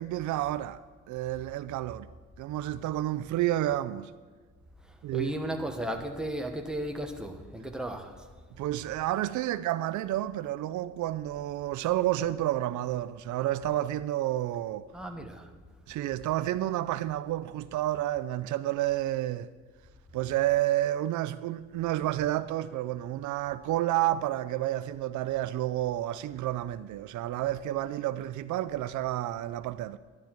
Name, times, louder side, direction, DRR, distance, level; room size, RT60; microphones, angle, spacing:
voice 1, 0.0-2.1 2.4-4.1 5.0-5.3 8.6-14.9 15.9-19.5 20.1-30.0, right 14 dB, 75° right, 0.5 m, -30 dB
voice 2, 4.8-8.3 14.9-15.5, right 1 dB, ahead, 1.2 m, -35 dB
11.5 x 11.0 x 4.5 m
cardioid pair, 90°, 30 cm